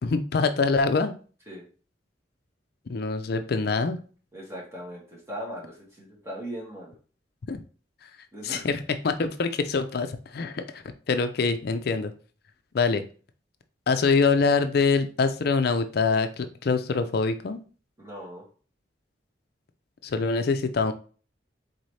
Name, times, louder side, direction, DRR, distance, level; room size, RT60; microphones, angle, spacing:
voice 1, 0.0-1.2 2.9-4.0 7.5-7.6 8.4-12.1 12.7-13.0 13.9-17.6 20.0-20.9, left 4 dB, 55° left, 9 dB, 0.4 m, -25 dB
voice 2, 4.3-6.9 8.3-8.8 18.0-18.4, equal, 15° right, -4 dB, 1.6 m, -39 dB
4.0 x 4.0 x 3.2 m, 0.39 s
head